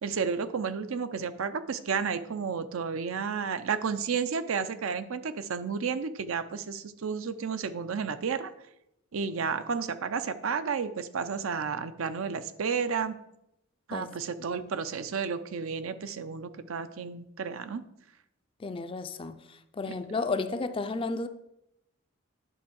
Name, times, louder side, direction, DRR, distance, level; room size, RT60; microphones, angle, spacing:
voice 1, 0.0-8.5 9.1-13.2 13.9-17.8 19.9-20.2, right 6 dB, 70° right, 0.5 m, -32 dB
voice 2, 18.6-19.4 19.7-21.3, left 3 dB, 25° left, 0.4 m, -32 dB
10.0 x 3.5 x 6.2 m
head